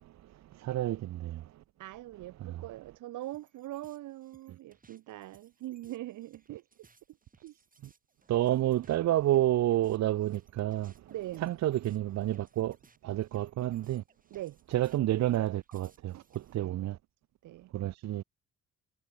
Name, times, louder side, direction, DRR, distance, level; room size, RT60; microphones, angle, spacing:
voice 1, 0.6-1.3 8.3-10.9 11.4-12.7 13.0-14.0 14.7-16.1 16.5-16.9 17.7-18.2, right 13 dB, 65° right, 0.7 m, -29 dB
voice 2, 1.8-6.9 7.4-7.5 11.1-11.5 14.3-14.6 16.6-16.9 17.4-17.7, right 16 dB, 85° right, 2.1 m, -42 dB
sound 1, 3.2-16.6, right 4 dB, 30° right, 6.0 m, -63 dB
cardioid pair, 90°, 30 cm